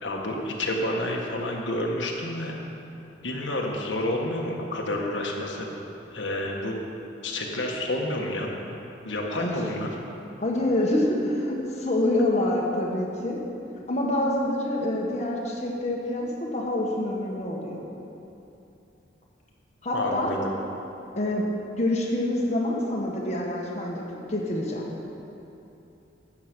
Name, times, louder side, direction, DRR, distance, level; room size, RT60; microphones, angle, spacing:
voice 1, 0.0-2.5 3.2-5.7 6.1-6.8 7.2-8.8 9.0-9.9 19.9-20.5, left 1 dB, 85° left, 0 dB, 1.6 m, -29 dB
voice 2, 10.4-13.4 13.9-17.9 19.8-20.3 21.1-21.4 21.8-24.0 24.3-24.8, left 1 dB, 40° left, -2 dB, 1.5 m, -26 dB
12.5 x 8.4 x 6.2 m, 2.9 s
head